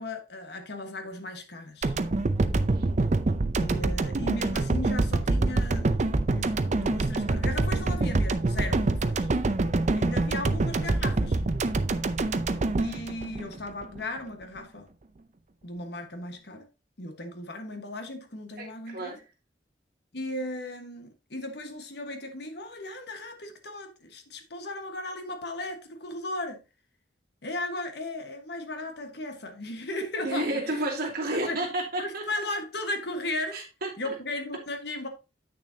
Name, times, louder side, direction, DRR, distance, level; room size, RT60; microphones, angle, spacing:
voice 1, 0.0-1.9 3.6-9.3 9.9-11.4 12.8-14.9 15.6-16.7 17.0-19.2 20.1-26.6 27.4-30.8 31.5-31.6 32.0-33.6 34.0-35.1, left 1 dB, 65° left, 1.4 m, -36 dB
sound 1, 1.8-14.0, right 2 dB, 40° right, 0.6 m, -26 dB
voice 2, 18.6-19.2 30.2-32.2 33.5-33.9, right 1 dB, 55° right, 2.7 m, -31 dB
8.5 x 6.5 x 2.8 m
head